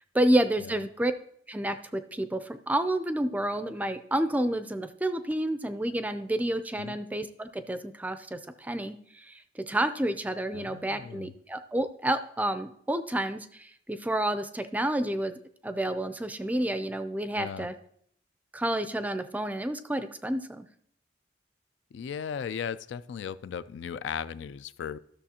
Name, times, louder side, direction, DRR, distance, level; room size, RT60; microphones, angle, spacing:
voice 1, 0.1-1.1 1.5-9.4 9.7-15.3 15.6-17.7 18.5-20.7, right 1 dB, 10° right, 10 dB, 0.4 m, -29 dB
voice 2, 10.5-11.3 17.4-17.7 21.9-25.0, left 7 dB, 75° left, 15 dB, 0.3 m, -37 dB
13.5 x 6.5 x 2.8 m, 0.67 s
head